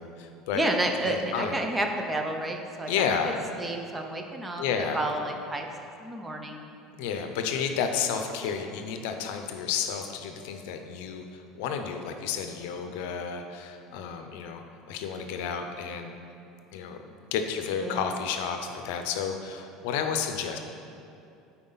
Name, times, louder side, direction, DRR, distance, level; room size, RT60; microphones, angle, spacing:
voice 1, 0.0-0.6 1.0-1.6 2.9-3.4 4.6-5.0 6.9-16.1 16.7-17.0 17.3-20.6, left 7 dB, 80° left, 6 dB, 0.6 m, -31 dB
voice 2, 0.5-2.9 3.6-5.7 6.0-6.6 17.8-18.1, right 1 dB, 15° right, 3 dB, 0.6 m, -30 dB
9.5 x 4.3 x 4.0 m, 2.6 s
cardioid pair, 140°, 0 cm